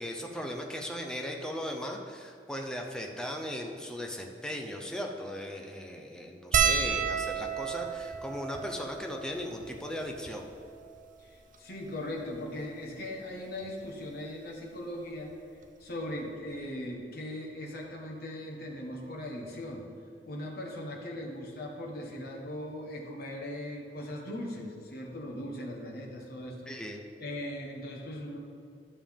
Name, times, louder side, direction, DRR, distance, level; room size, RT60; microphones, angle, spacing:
voice 1, 0.0-10.5 26.7-27.0, equal, 5° left, 1 dB, 0.7 m, -37 dB
sound 1, 6.5-11.1 11.9-12.0 12.2-12.4 13.6-13.9 15.3-15.4 15.6-15.8, right 6 dB, 50° right, 0.5 m, -32 dB
voice 2, 11.2-15.3 15.8-19.9 20.2-26.7 27.2-28.4, left 1 dB, 60° left, 0 dB, 1.3 m, -39 dB
11.5 x 6.9 x 3.6 m, 2.4 s
head